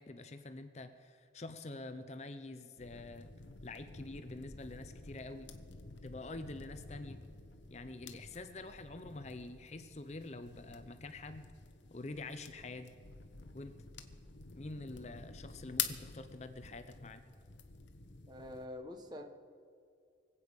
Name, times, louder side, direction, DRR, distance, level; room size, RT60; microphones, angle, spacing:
voice 1, 0.0-3.3 3.6-5.5 6.0-7.2 7.7-11.5 11.9-12.9 13.5-14.1 14.5-17.2, left 2 dB, 35° left, 9 dB, 0.7 m, -46 dB
sound 1, 2.8-18.7, left 7 dB, 90° left, 1.1 m, -48 dB
voice 2, 18.3-19.2, left 1 dB, 25° right, 5 dB, 1.3 m, -45 dB
25.0 x 8.5 x 5.3 m, 2.3 s
head